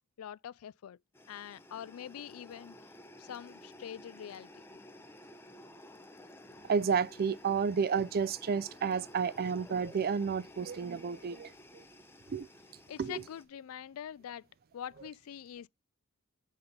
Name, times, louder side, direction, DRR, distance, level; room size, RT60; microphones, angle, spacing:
voice 1, 0.2-1.0 1.3-2.8 3.2-4.5 12.9-14.5 14.7-15.7, left 9 dB, 75° left, 0.3 m, -44 dB
sound 1, 1.1-13.4, left 1 dB, 10° left, 0.7 m, -53 dB
voice 2, 6.6-11.5 12.3-12.5 13.0-13.2, right 6 dB, 45° right, 0.4 m, -31 dB
7.8 x 4.2 x 5.2 m
head